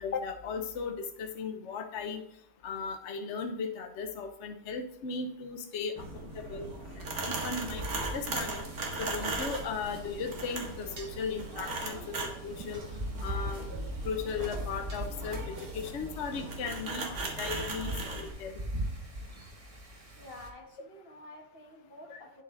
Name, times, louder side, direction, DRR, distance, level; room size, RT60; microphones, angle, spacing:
voice 1, 0.0-2.2 2.6-6.0 6.3-6.7 7.2-8.6 9.0-12.1 12.4-12.8 13.2-13.7 14.0-18.6, left 5 dB, 55° left, 5 dB, 1.0 m, -37 dB
sound 1, 6.0-18.3, right 3 dB, 85° right, 2.1 m, -38 dB
voice 2, 6.2-7.7 20.2-22.4, left 1 dB, 40° left, 1 dB, 1.7 m, -51 dB
Wind, 7.3-20.5, equal, 25° right, 1.0 m, -41 dB
sound 2, 11.0-11.4 12.7-13.5 14.9-15.6, right 3 dB, 50° right, 1.8 m, -52 dB
9.3 x 7.0 x 3.9 m, 0.73 s
omnidirectional pair, 1.5 m